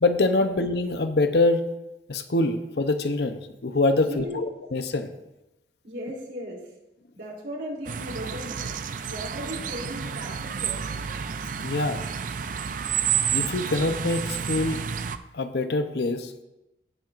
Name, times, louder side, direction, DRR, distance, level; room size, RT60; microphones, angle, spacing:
voice 1, 0.0-1.6 2.1-5.1 11.6-12.0 13.3-14.8 15.3-16.3, left 2 dB, 70° left, 8 dB, 0.7 m, -24 dB
voice 2, 4.1-4.4 5.8-6.7 7.1-10.8, equal, 85° right, -2 dB, 3.2 m, -37 dB
sound 1, 7.8-15.2, right 8 dB, 50° right, 0.4 m, -30 dB
17.0 x 7.5 x 2.5 m, 0.94 s
head